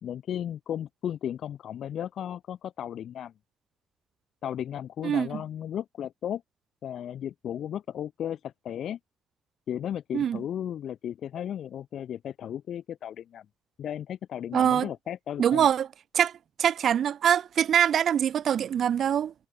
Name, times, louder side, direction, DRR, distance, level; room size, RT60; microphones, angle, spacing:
voice 1, 0.0-3.3 4.4-6.4 6.8-9.0 9.7-13.5 13.8-15.7, left 10 dB, 65° left, 2.3 m, -35 dB
voice 2, 5.0-5.4 10.1-10.4 14.5-14.9 15.4-15.9 16.1-16.3 16.6-19.3, right 9 dB, 60° right, 1.1 m, -24 dB
cardioid pair, 90°, 0 cm